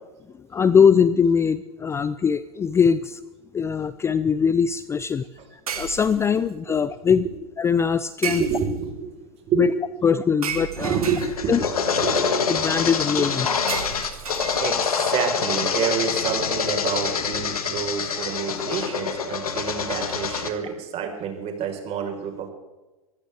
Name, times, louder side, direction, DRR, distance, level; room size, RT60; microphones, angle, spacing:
voice 1, 0.5-3.2 3.5-5.2 5.5-7.2 7.6-8.4 9.6-9.7 10.0-11.0 11.5-11.6 12.5-13.5, left 6 dB, 15° left, 15 dB, 0.5 m, -21 dB
sound 1, 3.6-3.8 5.7-6.5 8.2-9.0 10.4-11.7 13.7-15.0, right 7 dB, 80° right, 2.3 m, -33 dB
voice 2, 8.3-9.7 10.8-12.2 13.2-13.3 14.6-22.5, right 7 dB, 35° right, 3 dB, 4.3 m, -28 dB
sound 2, 10.9-20.5, left 5 dB, 80° left, 1.9 m, -26 dB
24.0 x 15.5 x 3.4 m, 1.1 s
hypercardioid pair, 105°, 18 cm